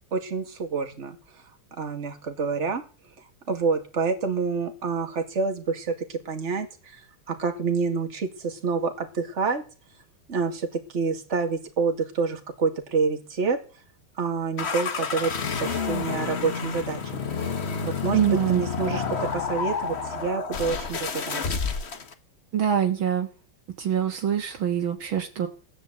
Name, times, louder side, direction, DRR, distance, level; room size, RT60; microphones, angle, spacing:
voice 1, 0.1-1.2 1.7-2.8 3.5-9.6 10.3-13.6 14.2-15.3 15.6-17.5 17.8-21.6, right 4 dB, 35° right, 4 dB, 2.4 m, -28 dB
sound 1, 14.6-22.1, left 5 dB, 35° left, 1.2 m, -29 dB
voice 2, 18.1-18.6 22.5-23.3 23.8-25.5, right 9 dB, 65° right, 5 dB, 2.3 m, -24 dB
17.5 x 10.0 x 8.0 m, 0.38 s
omnidirectional pair, 2.4 m